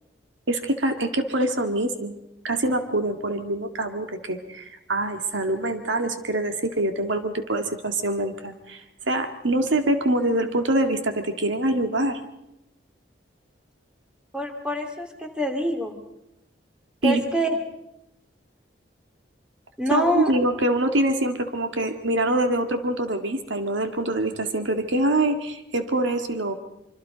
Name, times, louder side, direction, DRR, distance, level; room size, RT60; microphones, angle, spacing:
voice 1, 0.5-2.1 2.4-12.2 17.0-17.2 19.9-26.5, right 1 dB, 85° right, 6 dB, 2.0 m, -25 dB
voice 2, 14.3-15.9 17.0-17.5 19.8-20.3, equal, 5° right, 3 dB, 2.6 m, -25 dB
25.5 x 25.0 x 5.2 m, 0.85 s
head